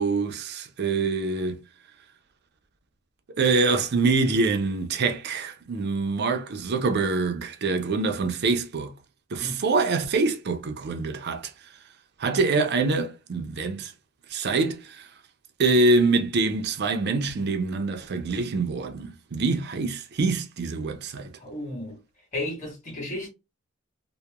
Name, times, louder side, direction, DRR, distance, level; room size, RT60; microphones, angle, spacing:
voice 1, 0.0-1.6 3.4-8.9 9.3-11.5 12.2-13.9 14.3-15.1 15.6-21.3, right 3 dB, 50° right, 0.5 m, -25 dB
voice 2, 21.4-22.0 22.3-23.3, left 1 dB, 35° left, 1.4 m, -33 dB
2.9 x 2.1 x 2.2 m
head